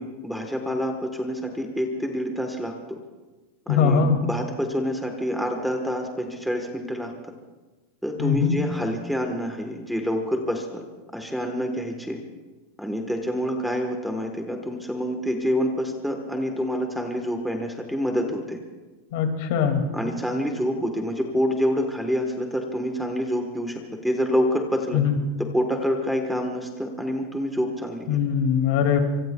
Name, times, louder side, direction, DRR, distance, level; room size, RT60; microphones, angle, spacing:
voice 1, 0.0-3.0 3.7-7.1 8.0-10.8 11.1-12.2 12.8-18.6 19.9-25.0 25.4-28.2, equal, ahead, 3 dB, 1.2 m, -27 dB
voice 2, 3.7-4.2 8.2-8.6 19.1-19.8 24.9-25.2 28.1-29.0, left 7 dB, 55° left, 5 dB, 2.2 m, -21 dB
24.5 x 24.5 x 2.3 m, 1.2 s
supercardioid pair, 165°, 0 cm